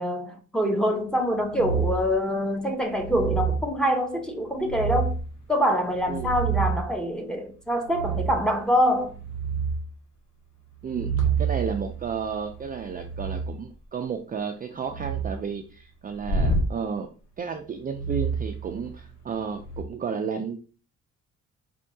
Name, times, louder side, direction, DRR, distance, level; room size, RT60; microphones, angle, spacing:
voice 1, 0.0-5.1 5.5-9.1, equal, 5° left, 0.8 m, -25 dB
sound 1, 1.5-2.1 2.9-3.7 4.6-5.3 5.9-6.9 7.9-8.5 8.9-9.8 10.8-13.5 14.8-15.4 16.2-16.7 17.9-19.1 19.6-19.8, right 5 dB, 70° left, 1.7 m, -28 dB
voice 2, 11.4-17.1 17.4-20.6, right 6 dB, 30° right, 0.4 m, -32 dB
4.4 x 2.8 x 2.7 m
cardioid pair, 90°, 30 cm